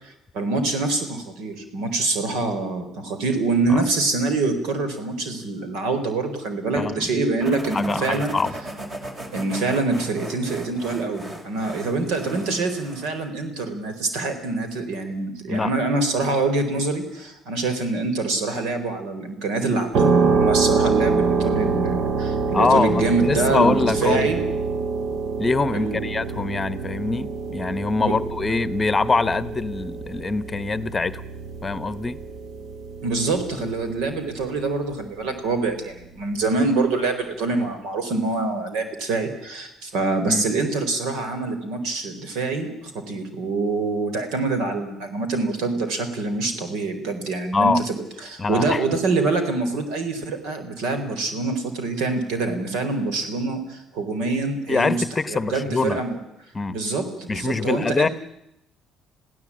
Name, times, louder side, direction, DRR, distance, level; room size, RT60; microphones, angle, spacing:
voice 1, 0.0-8.4 9.3-24.4 25.7-26.0 28.0-28.1 33.0-56.2 56.7-58.1, right 3 dB, 85° right, 9 dB, 4.3 m, -25 dB
voice 2, 6.8-7.2 7.7-8.5 15.5-15.7 22.5-24.3 25.4-31.2 31.6-32.2 40.3-40.4 47.5-47.8 48.4-48.8 54.7-56.0 56.5-56.8 57.3-58.1, left 4 dB, 25° left, 15 dB, 1.0 m, -24 dB
sound 1, 7.4-13.2, right 1 dB, 30° right, 4.2 m, -37 dB
sound 2, 19.9-34.6, right 4 dB, 60° right, 1.6 m, -25 dB
27.5 x 16.5 x 8.7 m, 0.84 s
cardioid pair, 105°, 0 cm